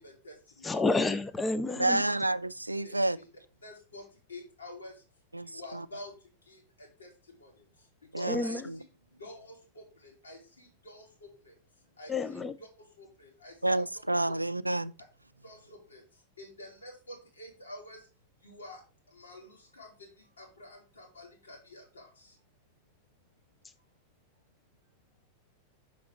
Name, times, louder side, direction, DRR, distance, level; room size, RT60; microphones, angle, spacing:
voice 1, 0.0-0.8 2.8-3.3 3.6-5.0 5.4-8.6 9.2-11.6 12.0-13.8 14.3-14.6 15.4-18.1 18.4-22.4, left 1 dB, 75° left, 2.7 m, -49 dB
voice 2, 0.6-2.0 8.3-8.6 12.1-12.5, left 3 dB, 15° left, 0.5 m, -29 dB
voice 3, 1.8-3.2 5.3-5.8 8.1-8.8 13.6-14.9, right 2 dB, 85° right, 0.3 m, -29 dB
6.2 x 5.0 x 4.5 m
figure-of-eight pair, 90°, 0 cm